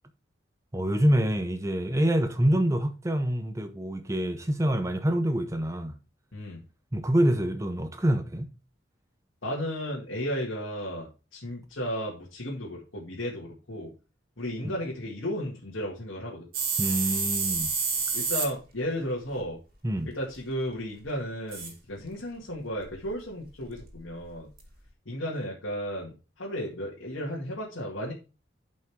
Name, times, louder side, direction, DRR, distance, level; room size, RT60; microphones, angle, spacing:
voice 1, 0.7-6.0 6.9-8.5 14.6-14.7 16.8-17.7 19.8-20.1, right 1 dB, 15° right, 0.6 m, -26 dB
voice 2, 9.4-13.9 14.4-16.5 18.1-19.6 20.1-24.5 25.1-28.1, equal, 80° left, 2.1 m, -34 dB
sound 1, 16.5-18.5 19.3-19.4 21.5-21.7 22.8-23.1 23.5-23.9 24.3-24.4 24.6-24.7, right 5 dB, 50° right, 2.3 m, -29 dB
11.5 x 5.4 x 3.6 m
head